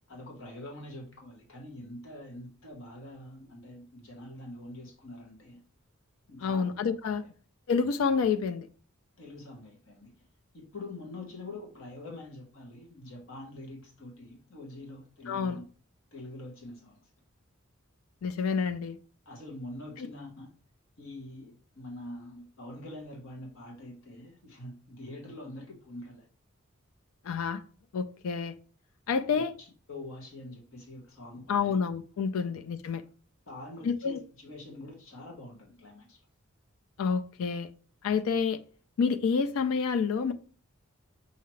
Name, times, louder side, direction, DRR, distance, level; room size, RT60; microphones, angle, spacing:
voice 1, 0.1-5.6 6.3-6.7 7.2-7.3 9.2-10.1 10.5-15.6 16.1-17.1 19.2-20.5 21.0-26.3 29.3-31.8 32.3-32.5 33.5-36.2, left 1 dB, 70° left, 1.3 m, -45 dB
voice 2, 6.4-7.2 7.7-8.7 15.3-15.6 18.2-19.0 20.0-20.1 27.2-27.6 27.9-28.5 29.1-29.5 31.5-33.0 33.8-34.2 37.0-37.7 38.0-38.6 39.0-40.3, left 5 dB, 90° left, 0.4 m, -28 dB
5.7 x 2.8 x 3.1 m
head